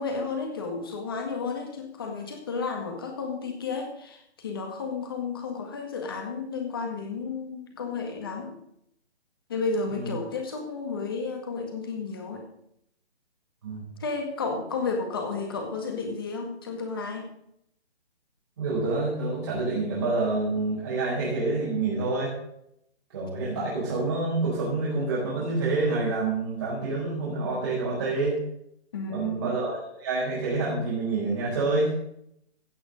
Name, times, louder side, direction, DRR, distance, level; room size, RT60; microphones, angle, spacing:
voice 1, 0.0-8.5 9.5-12.4 14.0-17.3 28.9-29.4, left 4 dB, 20° left, 3 dB, 1.8 m, -32 dB
voice 2, 18.6-22.3 23.1-28.4 29.1-31.9, right 3 dB, 25° right, -8 dB, 4.5 m, -27 dB
16.0 x 6.5 x 6.4 m, 0.74 s
hypercardioid pair, 180°, 33 cm